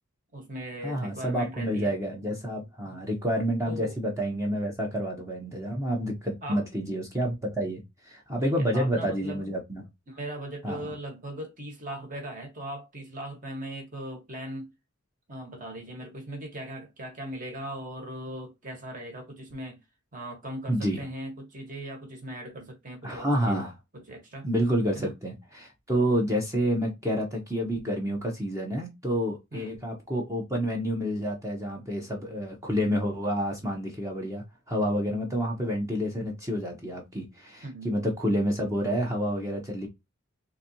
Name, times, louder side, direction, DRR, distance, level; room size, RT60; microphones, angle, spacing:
voice 1, 0.3-1.9 2.8-3.0 3.7-3.9 6.4-6.6 8.4-9.6 10.1-14.7 15.3-19.8 20.1-23.6 23.9-24.5 24.9-25.1 29.5-29.8 37.6-37.9, right 1 dB, 40° right, 1.4 m, -39 dB
voice 2, 0.8-9.8 10.6-10.9 20.7-21.0 23.0-23.7 24.4-39.9, equal, 15° right, 0.7 m, -29 dB
4.0 x 2.6 x 2.7 m
head